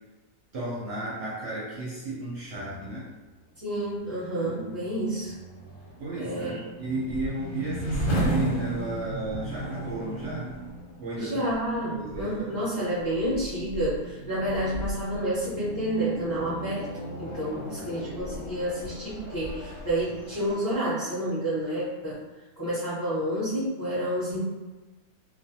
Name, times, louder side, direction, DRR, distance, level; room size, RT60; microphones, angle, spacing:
voice 1, 0.5-3.1 4.5-4.6 6.0-10.5 11.0-11.5 11.9-12.3 17.5-17.7, right 2 dB, 60° right, -7 dB, 0.8 m, -34 dB
sound 1, 3.5-20.6, right 1 dB, 85° left, 1.2 m, -35 dB
voice 2, 3.6-5.4 6.2-6.6 11.2-22.2 22.6-24.4, right 1 dB, 30° left, -11 dB, 0.6 m, -29 dB
2.4 x 2.1 x 2.7 m, 1.2 s
omnidirectional pair, 1.6 m